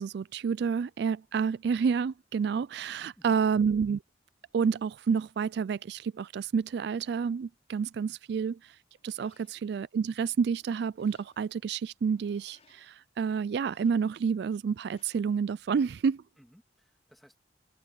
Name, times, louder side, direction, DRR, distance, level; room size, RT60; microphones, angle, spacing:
voice 1, 0.0-4.0 4.5-8.8 9.0-16.2, right 6 dB, 60° right, 0.3 m, -29 dB
voice 2, 2.9-3.4 8.1-8.2 9.2-9.3 16.4-17.4, equal, ahead, 2.1 m, -60 dB
sound 1, 8.9-9.8 10.3-11.7 12.1-13.0 13.5-14.3 14.9-15.5, left 4 dB, 35° left, 5.1 m, -67 dB
head